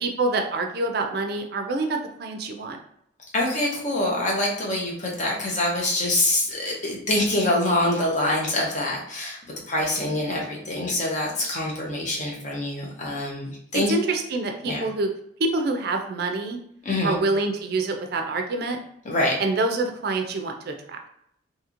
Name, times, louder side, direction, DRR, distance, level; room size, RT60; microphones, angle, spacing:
voice 1, 0.0-2.8 13.7-15.1 15.4-16.6 17.0-18.8 19.4-21.0, right 2 dB, 55° right, 4 dB, 0.4 m, -26 dB
voice 2, 3.3-9.4 9.7-13.9 14.6-14.8 16.8-17.2 19.0-19.4, left 1 dB, 40° left, -2 dB, 0.7 m, -25 dB
2.8 x 2.7 x 2.5 m, 0.72 s
head